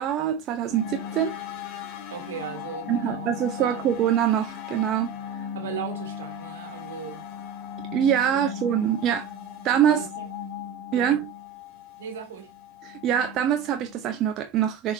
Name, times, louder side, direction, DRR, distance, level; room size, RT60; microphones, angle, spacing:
voice 1, 0.0-1.4 2.9-5.1 7.8-9.3 9.6-10.0 10.9-11.3 12.8-14.9, right 9 dB, 45° right, 0.9 m, -24 dB
sound 1, 0.7-14.1, left 8 dB, 60° left, 1.9 m, -38 dB
voice 2, 2.1-3.9 5.5-7.3 8.3-8.5 9.9-10.3 10.9-11.2 12.0-12.5, right 8 dB, 80° right, 2.3 m, -38 dB
6.5 x 5.7 x 2.7 m
hypercardioid pair, 95°, 0 cm